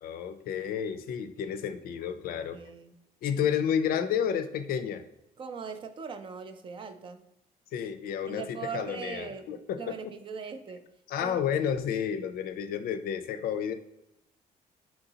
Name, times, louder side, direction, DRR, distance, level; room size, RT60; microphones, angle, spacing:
voice 1, 0.0-2.6 3.2-5.0 7.7-9.9 11.1-13.7, left 8 dB, 65° left, 10 dB, 0.4 m, -31 dB
voice 2, 2.5-3.0 5.4-7.2 8.3-9.5 9.8-10.8 11.2-11.4, right 6 dB, 35° right, 8 dB, 0.4 m, -40 dB
4.5 x 3.8 x 2.7 m, 0.83 s
cardioid pair, 170°, 16 cm